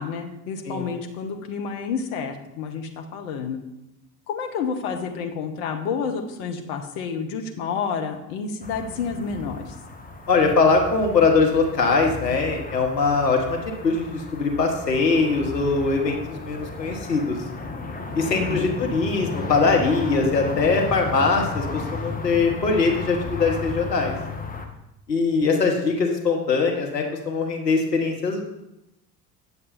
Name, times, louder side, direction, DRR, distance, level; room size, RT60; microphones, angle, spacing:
voice 1, 0.0-3.6 4.3-9.8 18.2-18.8, left 6 dB, 65° left, 4 dB, 1.2 m, -30 dB
sound 1, 8.6-24.7, left 3 dB, 15° left, 1.5 m, -34 dB
voice 2, 10.3-13.6 13.8-17.4 18.1-24.1 25.1-28.4, left 4 dB, 85° left, 2 dB, 1.3 m, -22 dB
9.4 x 7.1 x 4.2 m, 0.89 s
figure-of-eight pair, 65°, 48 cm